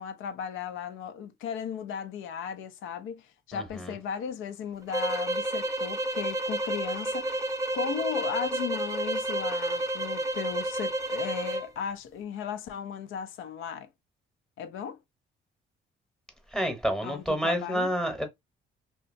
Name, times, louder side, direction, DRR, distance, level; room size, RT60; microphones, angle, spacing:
voice 1, 0.0-13.9 14.6-15.0 17.0-17.9, left 8 dB, 80° left, 0.4 m, -36 dB
voice 2, 3.5-4.0 16.5-18.3, equal, 5° left, 0.8 m, -29 dB
sound 1, 4.9-11.7, right 1 dB, 15° right, 0.4 m, -30 dB
2.7 x 2.3 x 2.4 m
cardioid pair, 90°, 20 cm